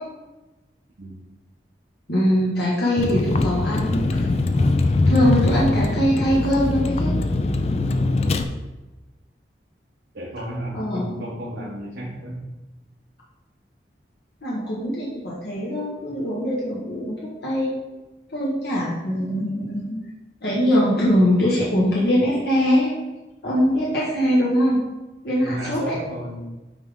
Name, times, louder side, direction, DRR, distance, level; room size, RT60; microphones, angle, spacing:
voice 1, 2.1-4.3 4.5-7.1 10.7-11.2 14.4-17.7 18.3-20.0 20.4-22.9 23.4-24.8 25.2-25.9, equal, 70° left, -6 dB, 1.4 m, -22 dB
Vehicle, 3.0-8.4, left 2 dB, 35° left, 0.4 m, -21 dB
voice 2, 10.1-12.5 25.4-26.4, equal, 80° right, -6 dB, 1.2 m, -33 dB
8.8 x 3.4 x 3.8 m, 1.1 s
head